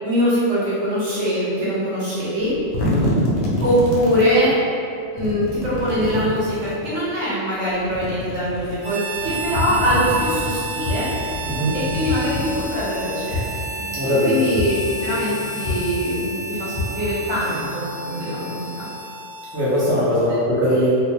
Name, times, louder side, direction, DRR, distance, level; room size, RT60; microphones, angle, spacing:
voice 1, 0.0-2.5 3.6-4.5 5.1-11.1 11.7-13.5 14.2-14.8 15.0-18.9, equal, 70° right, -9 dB, 1.2 m, -22 dB
sound 1, 2.4-4.4 5.2-6.8 7.7-8.8 9.1-10.6 11.2-13.0, left 1 dB, 70° left, 0.8 m, -27 dB
voice 2, 2.8-3.2 11.4-11.8 13.9-14.5 19.5-20.9, equal, 15° right, -10 dB, 0.4 m, -20 dB
Harmonica, 8.8-19.9, right 2 dB, 90° right, 1.0 m, -31 dB
sound 2, 9.1-10.4 10.8-11.4 12.0-12.7 13.3-18.5, left 2 dB, 25° left, 1.0 m, -31 dB
2.4 x 2.1 x 2.8 m, 2.5 s
omnidirectional pair, 1.3 m